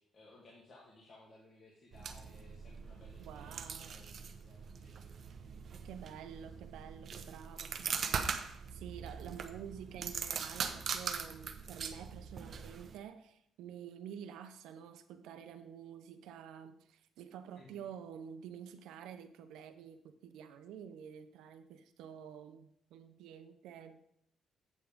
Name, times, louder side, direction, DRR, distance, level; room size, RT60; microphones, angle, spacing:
voice 1, 0.0-5.4 17.5-17.9, left 2 dB, 50° left, 2.2 m, -60 dB
sound 1, 1.9-13.0, right 6 dB, 55° right, 0.9 m, -41 dB
voice 2, 3.3-4.0 5.8-24.0, right 8 dB, 90° right, 0.8 m, -49 dB
8.2 x 7.2 x 5.1 m
cardioid pair, 90°, 0 cm